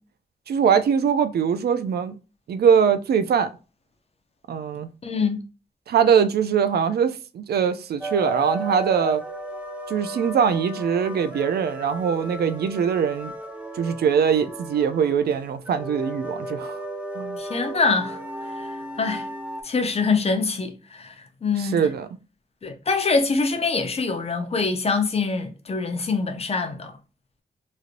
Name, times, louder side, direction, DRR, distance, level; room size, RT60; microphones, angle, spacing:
voice 1, 0.5-2.2 2.5-3.5 4.5-4.9 5.9-9.2 9.9-13.3 13.7-16.8 17.2-17.4 21.6-22.1, right 7 dB, 75° right, 0.4 m, -22 dB
voice 2, 5.0-5.4 17.4-18.2 18.5-19.3 19.6-21.9 22.6-26.9, left 4 dB, 40° left, 0.6 m, -24 dB
sound 1, 8.0-19.6, right 1 dB, 10° right, 0.5 m, -34 dB
3.1 x 2.6 x 2.5 m
wide cardioid pair, 115°, 17 cm